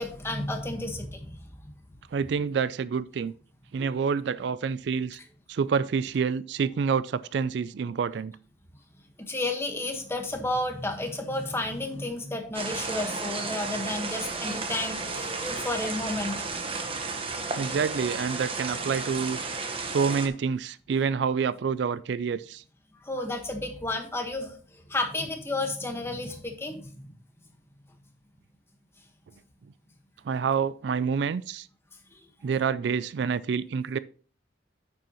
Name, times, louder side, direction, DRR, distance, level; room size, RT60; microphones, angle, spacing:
voice 1, 0.0-1.7 9.2-16.3 19.7-19.8 23.0-27.1 32.1-32.2, left 2 dB, 15° left, 1.3 m, -32 dB
voice 2, 2.1-3.3 3.7-5.2 5.5-8.3 17.6-19.4 19.8-22.6 30.2-31.7 32.4-34.0, right 6 dB, 65° right, 0.3 m, -27 dB
sound 1, 12.5-20.3, right 3 dB, 30° right, 1.1 m, -33 dB
9.4 x 7.7 x 3.0 m
head